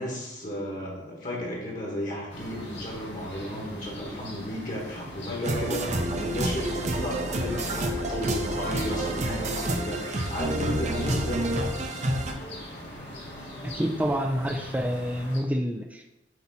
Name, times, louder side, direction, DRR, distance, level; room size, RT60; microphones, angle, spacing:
voice 1, 0.0-11.4, left 1 dB, 45° left, -3 dB, 1.5 m, -34 dB
sound 1, 2.3-15.4, left 1 dB, 70° left, 2.2 m, -41 dB
sound 2, 5.4-12.3, right 1 dB, 40° right, 0.7 m, -29 dB
voice 2, 13.6-16.1, equal, 10° right, 3 dB, 0.4 m, -28 dB
7.9 x 2.9 x 4.2 m, 0.93 s
head